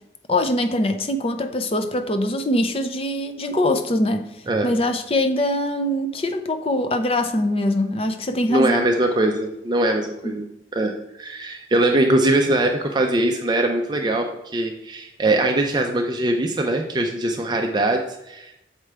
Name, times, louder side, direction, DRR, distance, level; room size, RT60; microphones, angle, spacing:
voice 1, 0.3-4.3 4.6-8.9 10.2-10.4, left 1 dB, 30° left, 7 dB, 0.5 m, -23 dB
voice 2, 8.5-18.5, right 1 dB, 25° right, 2 dB, 0.4 m, -22 dB
7.3 x 4.8 x 3.3 m, 0.90 s
head